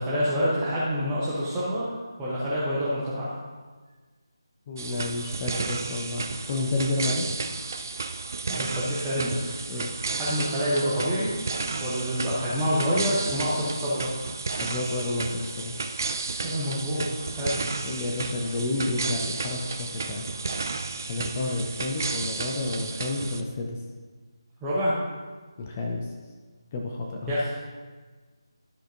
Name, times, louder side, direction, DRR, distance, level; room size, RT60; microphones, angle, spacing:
voice 1, 0.0-1.9 2.2-3.3 8.5-9.5 10.2-11.3 11.8-14.1 16.4-17.1 17.4-17.6 24.6-25.0 27.3-27.5, equal, 10° right, -11 dB, 0.9 m, -27 dB
voice 2, 4.7-7.4 9.7-9.9 14.5-15.7 17.8-20.2 21.1-23.8 25.6-26.1 26.7-27.4, left 2 dB, 20° left, 1 dB, 0.6 m, -30 dB
sound 1, 4.8-23.4, right 4 dB, 40° right, 0.4 m, -33 dB
12.5 x 5.0 x 2.7 m, 1.4 s
figure-of-eight pair, 155°, 3 cm